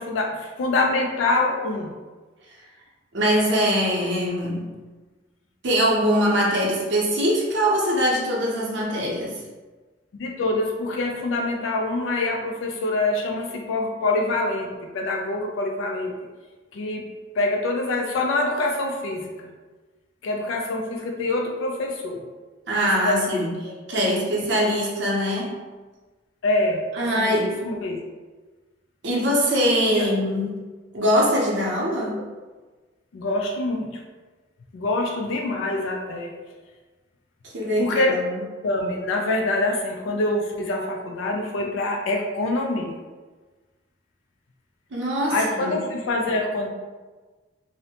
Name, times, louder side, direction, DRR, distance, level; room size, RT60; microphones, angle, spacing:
voice 1, 0.0-1.9 10.1-16.1 16.7-17.1 17.4-19.5 20.2-22.2 23.0-24.2 26.4-26.8 27.2-28.0 29.9-30.1 33.1-34.0 34.7-36.3 37.8-38.2 38.6-43.0 45.3-46.7, left 2 dB, 85° left, 1 dB, 0.3 m, -25 dB
voice 2, 3.1-4.6 5.6-9.4 22.7-23.5 23.9-25.6 26.9-27.5 29.0-30.5 30.9-32.2 37.5-38.4 44.9-45.8, equal, 65° right, -4 dB, 0.6 m, -22 dB
2.6 x 2.0 x 2.8 m, 1.3 s
head